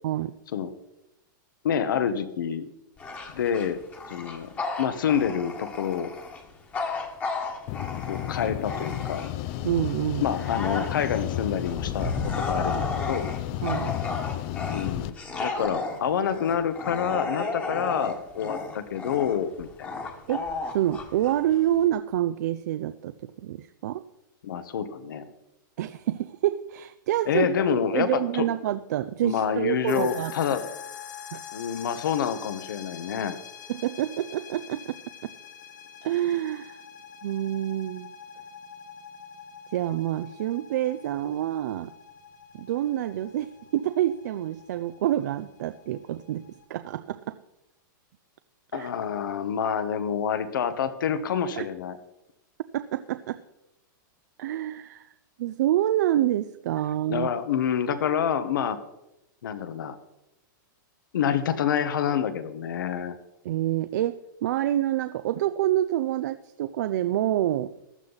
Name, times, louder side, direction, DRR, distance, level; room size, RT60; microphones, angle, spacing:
voice 1, 1.6-2.7 3.3-3.8 4.1-4.5 4.8-6.1 8.1-9.3 10.2-13.2 14.7-20.0 24.4-25.2 27.3-28.5 29.2-30.6 31.5-33.4 48.7-52.0 57.1-58.8 59.4-60.0 61.1-63.2, left 8 dB, 80° left, 12 dB, 1.3 m, -27 dB
Bark / Growling, 3.0-9.5 10.0-21.9, left 3 dB, 15° left, 1.4 m, -33 dB
sound 1, 7.7-15.1, left 13 dB, 30° left, 0.5 m, -32 dB
voice 2, 9.6-10.3 13.6-13.9 20.3-20.4 20.7-24.0 25.8-27.5 27.9-30.3 31.3-31.4 33.7-35.3 36.0-36.8 37.2-38.1 39.7-41.9 42.5-47.4 48.7-48.9 51.6-51.7 52.7-53.4 54.4-55.1 55.4-57.3 63.4-67.7, right 12 dB, 55° right, 11 dB, 0.5 m, -27 dB
sound 2, 29.9-46.7, left 8 dB, 65° left, 1.3 m, -45 dB
15.0 x 11.5 x 4.1 m, 0.88 s
supercardioid pair, 165°, 11 cm